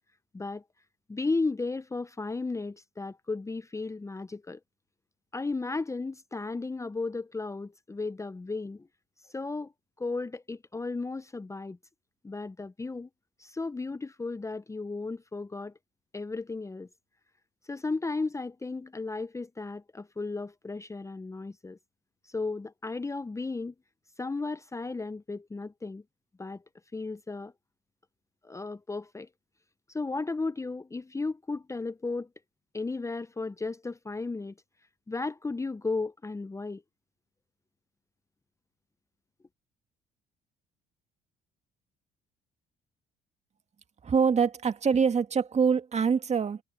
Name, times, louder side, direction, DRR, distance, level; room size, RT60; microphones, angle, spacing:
voice 1, 1.1-4.6 5.3-8.9 9.3-9.7 10.0-11.8 12.2-13.1 13.4-15.7 16.1-16.9 17.7-21.8 22.3-23.7 24.2-26.0 26.4-26.6 26.9-27.5 28.4-29.3 29.9-32.3 32.7-34.5 35.1-36.8, left 3 dB, 15° left, 0.8 m, -34 dB
voice 2, 44.0-46.6, right 6 dB, 40° right, 2.0 m, -24 dB
supercardioid pair, 65°, 17 cm